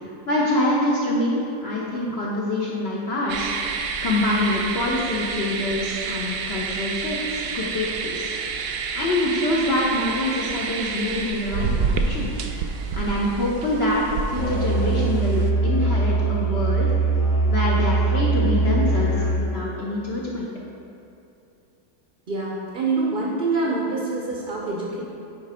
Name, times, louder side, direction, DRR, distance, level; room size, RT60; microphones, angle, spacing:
voice 1, 0.0-3.5 4.0-8.3 8.9-12.3 12.6-14.0 14.3-16.9 17.5-20.5, left 1 dB, 65° left, -4 dB, 0.6 m, -25 dB
sound 1, 3.3-15.5, right 5 dB, 70° right, 0.9 m, -29 dB
Musical instrument, 14.3-19.5, right 3 dB, 45° left, 1.4 m, -21 dB
voice 2, 22.3-25.0, right 3 dB, 50° right, -4 dB, 0.6 m, -25 dB
9.0 x 3.3 x 4.9 m, 2.7 s
omnidirectional pair, 2.0 m